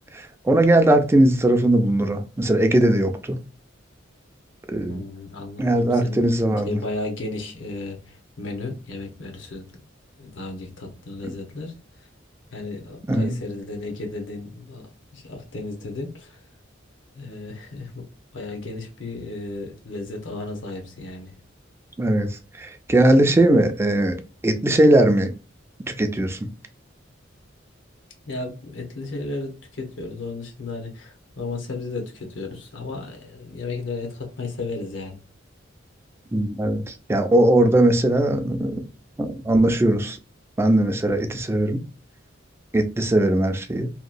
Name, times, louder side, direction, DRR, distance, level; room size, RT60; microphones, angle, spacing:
voice 1, 0.1-3.4 4.7-5.0 5.6-6.7 13.1-13.4 22.0-25.3 25.9-26.5 36.3-38.8 39.2-40.2 40.6-41.8 42.7-43.9, right 1 dB, 15° right, 0.4 m, -19 dB
voice 2, 4.9-6.2 6.6-8.0 8.4-9.6 10.2-11.7 12.5-14.8 15.1-16.3 17.1-18.0 18.3-21.3 28.3-35.2, left 3 dB, 70° left, 0.9 m, -34 dB
2.9 x 2.2 x 2.5 m
head